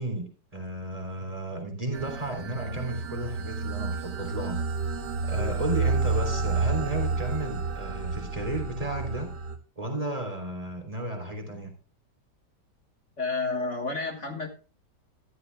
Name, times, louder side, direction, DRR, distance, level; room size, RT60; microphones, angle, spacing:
voice 1, 0.0-4.6 5.2-9.3 9.8-11.7, right 2 dB, 20° right, 2 dB, 3.5 m, -33 dB
sound 1, 1.9-9.6, right 4 dB, 75° right, 1.8 m, -30 dB
voice 2, 13.2-14.5, left 3 dB, 45° left, 3 dB, 1.7 m, -30 dB
14.0 x 13.0 x 2.2 m, 0.36 s
omnidirectional pair, 1.8 m